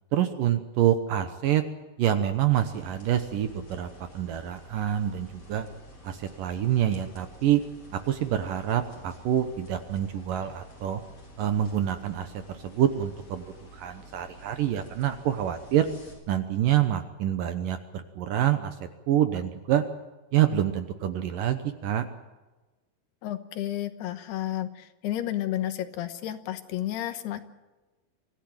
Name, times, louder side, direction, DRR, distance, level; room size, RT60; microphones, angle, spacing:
voice 1, 0.1-1.6 2.0-3.9 4.1-5.7 6.0-7.6 8.1-11.0 11.4-13.4 13.8-15.9 16.3-18.7 19.1-19.8 20.3-22.1, right 11 dB, 70° right, 8 dB, 2.3 m, -26 dB
sound 1, 2.5-16.1, equal, 35° left, 6.1 m, -50 dB
voice 2, 23.2-27.4, left 13 dB, 75° left, 9 dB, 3.1 m, -32 dB
25.5 x 15.5 x 8.8 m, 1.2 s
omnidirectional pair, 4.8 m